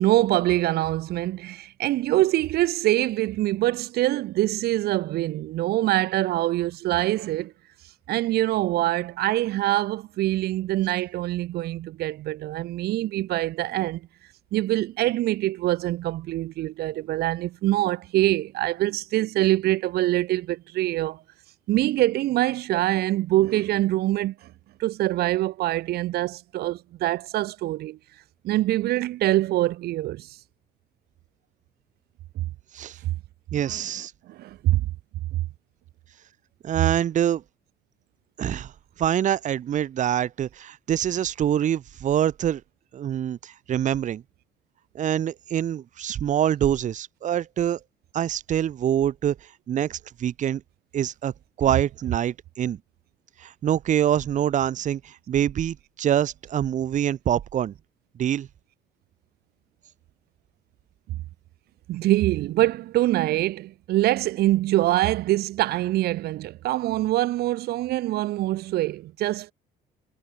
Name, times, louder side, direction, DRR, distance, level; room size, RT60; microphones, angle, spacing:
voice 1, 0.0-7.5 8.1-14.0 14.5-21.2 21.7-24.5 24.8-28.0 28.4-30.4 33.7-33.9 34.3-34.8 61.9-69.5, right 16 dB, 70° right, 0.8 m, -24 dB
voice 2, 33.5-34.1 36.6-37.4 38.4-38.7 39.0-42.6 42.9-44.2 44.9-47.8 48.1-49.4 49.7-50.6 50.9-51.3 51.6-52.8 53.4-57.7 58.2-58.5, right 10 dB, 45° right, 0.9 m, -25 dB
cardioid pair, 110°, 17 cm